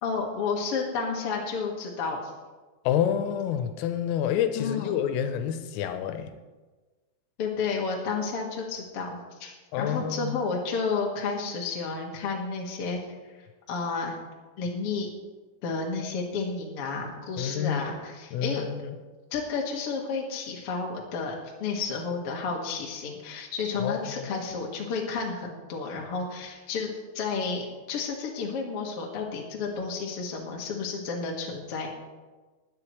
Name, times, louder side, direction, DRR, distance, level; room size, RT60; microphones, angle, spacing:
voice 1, 0.0-2.3 4.5-4.9 7.4-13.0 13.7-14.2 14.6-15.1 15.6-18.6 19.3-31.9, left 4 dB, 70° left, -1 dB, 1.3 m, -31 dB
voice 2, 2.9-6.3 9.7-10.4 17.4-17.8 18.3-19.0 23.8-24.3, left 9 dB, 90° left, 8 dB, 3.5 m, -28 dB
20.5 x 9.6 x 3.2 m, 1.3 s
omnidirectional pair, 5.9 m